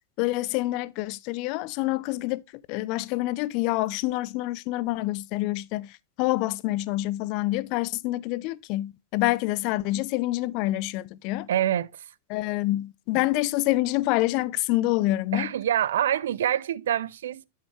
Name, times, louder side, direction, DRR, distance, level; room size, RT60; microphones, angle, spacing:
voice 1, 0.2-2.4 2.7-11.5 12.3-15.5, left 18 dB, 45° left, 0.4 m, -27 dB
voice 2, 11.5-12.1 15.3-17.5, right 11 dB, 60° right, 0.4 m, -26 dB
11.0 x 5.6 x 3.2 m
figure-of-eight pair, 90°, 0 cm